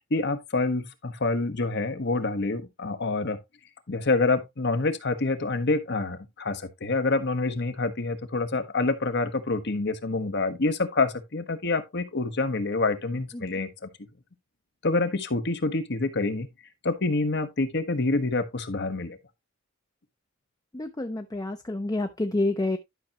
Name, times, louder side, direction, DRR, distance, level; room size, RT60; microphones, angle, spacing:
voice 1, 0.1-3.4 3.9-13.9 14.8-16.5 16.8-19.2, left 3 dB, 55° left, 1.2 m, -27 dB
voice 2, 20.7-22.8, left 2 dB, 20° left, 0.6 m, -28 dB
11.5 x 5.8 x 2.9 m
head